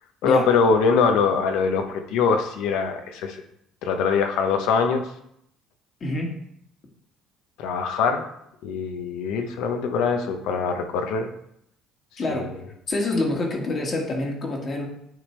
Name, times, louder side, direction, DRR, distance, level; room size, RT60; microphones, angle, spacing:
voice 1, 0.2-3.4 3.8-5.1 7.6-8.3 8.6-11.3 12.3-12.5, left 5 dB, 75° left, 6 dB, 0.7 m, -23 dB
voice 2, 6.0-6.3 12.2-12.5 12.9-14.8, left 2 dB, 45° left, 0 dB, 1.7 m, -26 dB
9.0 x 3.4 x 3.2 m, 0.75 s
supercardioid pair, 70°, 0 cm